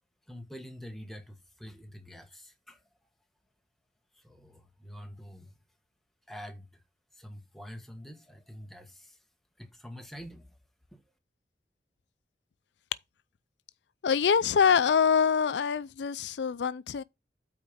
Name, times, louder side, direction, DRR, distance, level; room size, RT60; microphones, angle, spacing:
voice 1, 0.3-2.8 4.1-5.5 6.3-6.8 7.1-9.2 9.6-10.6 10.9-11.0, equal, ahead, 1.3 m, -46 dB
voice 2, 14.0-17.0, left 6 dB, 80° left, 0.4 m, -25 dB
8.5 x 4.3 x 5.0 m
head